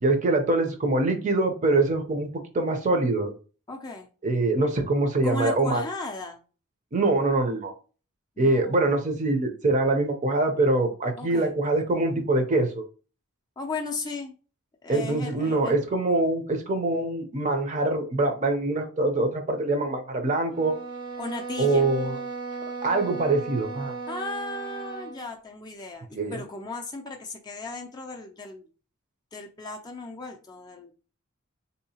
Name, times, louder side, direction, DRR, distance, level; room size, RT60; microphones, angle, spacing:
voice 1, 0.0-2.3 2.5-3.3 4.2-5.8 6.9-7.7 8.4-12.8 14.9-20.8 21.6-22.2 22.8-23.9 26.1-26.4, right 2 dB, 35° right, 0.6 m, -24 dB
voice 2, 3.7-4.1 5.2-6.4 8.4-8.8 11.2-11.5 13.6-14.4 14.8-15.7 21.2-21.9 24.1-28.7 29.3-30.9, left 3 dB, 20° left, 0.4 m, -36 dB
sound 1, 20.5-25.2, right 4 dB, 75° right, 1.2 m, -36 dB
3.6 x 2.7 x 2.8 m
head